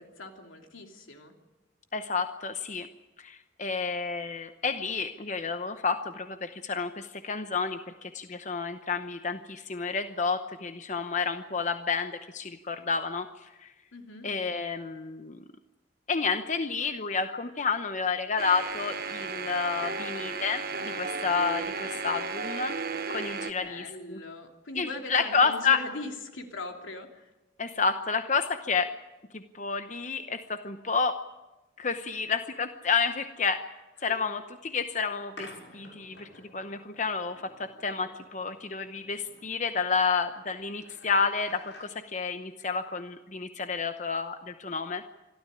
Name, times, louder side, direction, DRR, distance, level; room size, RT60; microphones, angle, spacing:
voice 1, 0.0-1.3 13.9-14.3 23.3-27.3 34.1-34.2, left 2 dB, 85° left, 4 dB, 2.9 m, -41 dB
voice 2, 1.9-2.9 3.2-13.3 13.6-13.7 14.2-15.4 16.1-22.7 23.1-24.2 24.8-25.8 27.6-28.9 29.3-31.2 31.8-33.6 34.0-35.5 35.7-45.0, left 5 dB, 40° left, 9 dB, 0.8 m, -30 dB
sound 1, 18.4-23.5, right 4 dB, 50° right, 1.2 m, -34 dB
sound 2, 35.4-41.9, left 2 dB, 65° left, 6.2 m, -52 dB
25.5 x 13.0 x 10.0 m, 1.1 s
head